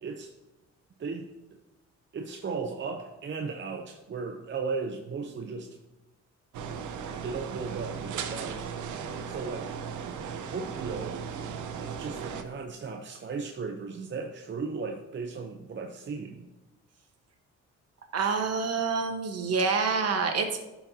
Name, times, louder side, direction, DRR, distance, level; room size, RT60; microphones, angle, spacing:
voice 1, 0.0-0.3 1.0-1.3 2.1-5.8 7.2-8.7 9.3-9.8 10.4-11.2 11.8-16.5, right 4 dB, 40° right, 3 dB, 0.7 m, -36 dB
sound 1, 6.5-12.4, right 6 dB, 75° right, 0.9 m, -37 dB
voice 2, 18.1-20.6, right 5 dB, 55° right, 5 dB, 1.3 m, -27 dB
14.5 x 6.1 x 2.8 m, 1.0 s
cardioid pair, 90°, 30 cm